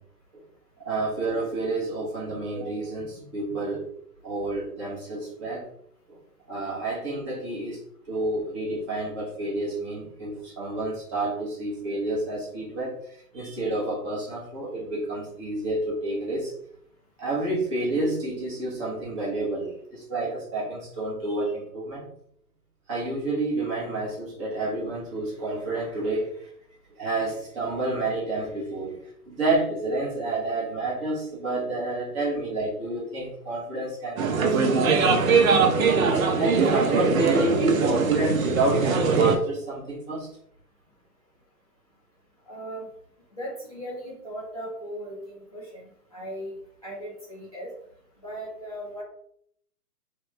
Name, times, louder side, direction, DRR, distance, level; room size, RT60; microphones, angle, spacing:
voice 1, 0.8-3.9 4.2-5.7 6.1-6.2 6.5-16.5 17.2-22.1 22.9-26.5 27.0-29.0 29.3-35.6 36.3-40.3, right 2 dB, 20° right, -5 dB, 0.7 m, -29 dB
sound 1, 34.2-39.4, right 5 dB, 60° right, 0.6 m, -21 dB
voice 2, 42.5-42.9 43.4-46.6 46.8-47.7 48.2-49.0, equal, 25° left, -7 dB, 0.4 m, -37 dB
3.1 x 2.2 x 3.0 m, 0.69 s
figure-of-eight pair, 135°, 47 cm